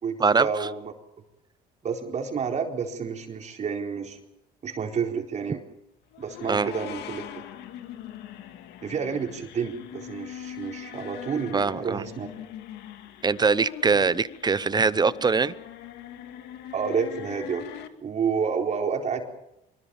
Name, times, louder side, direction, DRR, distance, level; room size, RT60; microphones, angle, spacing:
voice 1, 0.0-0.9 1.8-4.2 4.6-5.6 6.2-7.2 8.8-12.3 16.7-17.7 18.0-19.2, right 6 dB, 45° right, 4.3 m, -29 dB
sound 1, 6.1-17.9, left 11 dB, 80° left, 2.2 m, -41 dB
voice 2, 11.5-12.0 13.2-15.5, right 4 dB, 25° right, 0.8 m, -22 dB
25.0 x 22.0 x 7.1 m
cardioid pair, 110°, 17 cm